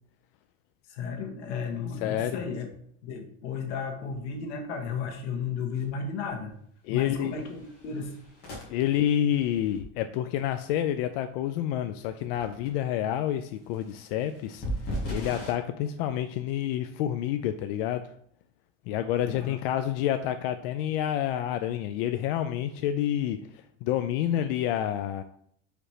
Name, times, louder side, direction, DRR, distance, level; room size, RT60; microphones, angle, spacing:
voice 1, 0.9-2.7 3.0-6.5 6.9-8.2 19.3-19.6, left 5 dB, 90° left, 3 dB, 1.5 m, -34 dB
voice 2, 2.0-2.4 6.8-7.3 8.7-18.0 18.9-25.2, left 11 dB, 60° left, 8 dB, 0.5 m, -29 dB
sound 1, 5.7-5.9 6.2-6.5 7.0-9.8 12.0-12.1 12.3-12.7 13.6-15.5, equal, 30° left, 2.0 m, -38 dB
5.0 x 4.3 x 4.8 m, 0.65 s
cardioid pair, 175°, 33 cm